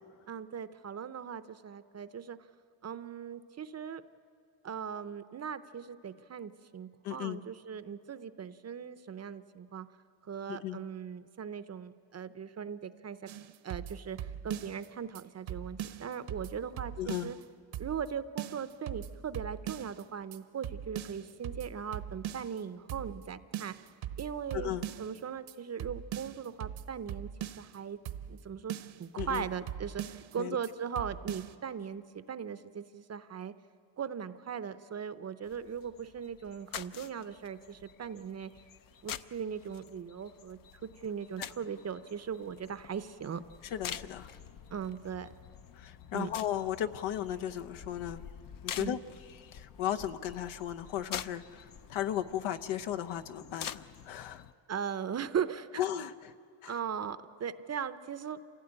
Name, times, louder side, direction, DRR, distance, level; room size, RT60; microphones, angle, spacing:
voice 1, 0.3-2.4 2.8-4.0 4.6-9.9 10.3-13.3 13.6-17.4 17.8-23.7 24.2-28.0 28.3-28.7 29.0-32.0 32.3-33.5 34.0-38.5 39.0-43.4 44.7-45.3 46.1-46.3 48.8-48.9 54.7-55.8 56.7-58.4, right 7 dB, 35° right, 12 dB, 0.6 m, -39 dB
voice 2, 7.0-7.4 10.5-10.8 17.0-17.3 24.5-24.9 29.2-29.5 30.4-30.6 41.4-41.5 43.6-44.3 45.7-48.3 48.6-49.0 49.3-54.4 55.8-56.3 56.6-56.7, left 11 dB, 80° left, 8 dB, 1.0 m, -36 dB
sound 1, 13.3-14.9 15.2-15.3 15.5-17.4 17.7-18.1 18.4-20.0 20.3-20.4 20.6-22.6 22.9-23.3 23.5-25.2 25.5-25.6 25.8-27.8 28.1-28.4 28.7-30.4 30.6-30.7 31.0-31.5, right 10 dB, 70° right, 1.0 m, -41 dB
sound 2, 35.5-54.5, left 9 dB, 45° left, 0.6 m, -47 dB
27.5 x 16.0 x 8.8 m, 2.3 s
cardioid pair, 135°, 48 cm